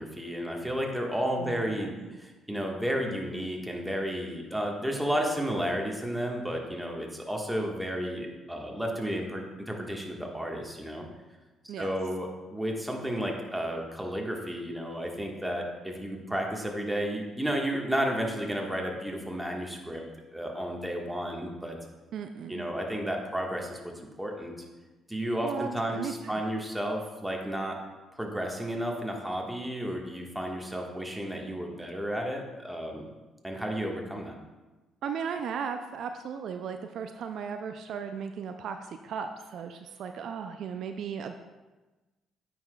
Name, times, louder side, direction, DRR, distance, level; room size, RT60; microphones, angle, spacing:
voice 1, 0.0-1.9 2.2-11.1 11.6-20.0 20.3-21.8 22.5-23.9 24.2-24.5 25.1-27.8 28.1-33.0 33.4-34.3, equal, 5° right, 0 dB, 1.4 m, -32 dB
voice 2, 1.4-2.2 11.7-11.9 22.1-22.6 25.4-26.4 35.0-41.4, right 6 dB, 65° right, 7 dB, 0.3 m, -36 dB
9.2 x 5.9 x 2.3 m, 1.2 s
hypercardioid pair, 50°, 0 cm